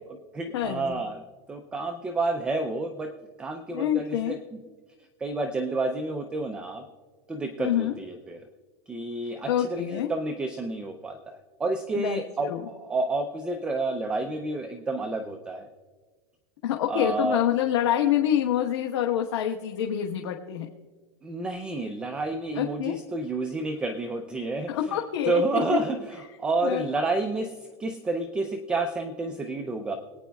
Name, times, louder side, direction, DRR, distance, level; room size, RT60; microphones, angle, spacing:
voice 1, 0.3-1.2 1.5-3.1 3.4-4.6 5.2-6.9 7.3-8.4 8.9-15.7 16.9-17.4 21.2-25.0 25.3-29.9, right 2 dB, 5° right, 5 dB, 0.4 m, -30 dB
voice 2, 3.7-4.3 7.6-7.9 9.5-10.1 11.9-12.2 12.5-12.6 16.6-20.7 22.6-23.0 24.7-25.4 26.6-26.9, left 10 dB, 85° left, 2 dB, 1.1 m, -26 dB
23.0 x 9.4 x 2.3 m, 1.4 s
supercardioid pair, 175°, 14 cm